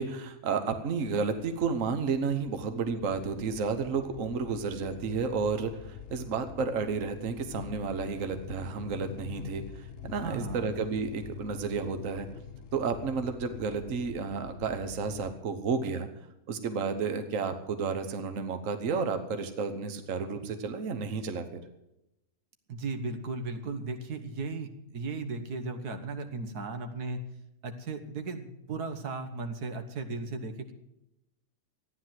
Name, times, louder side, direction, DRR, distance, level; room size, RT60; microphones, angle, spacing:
voice 1, 0.0-12.3 12.7-16.1 16.5-21.6, right 5 dB, 60° right, 8 dB, 1.5 m, -32 dB
sound 1, 1.0-15.3, left 7 dB, 60° left, 1.2 m, -45 dB
voice 2, 10.2-10.7 22.7-27.2 27.6-30.7, right 3 dB, 85° right, 7 dB, 1.9 m, -36 dB
14.0 x 9.9 x 7.6 m, 0.89 s
omnidirectional pair, 1.6 m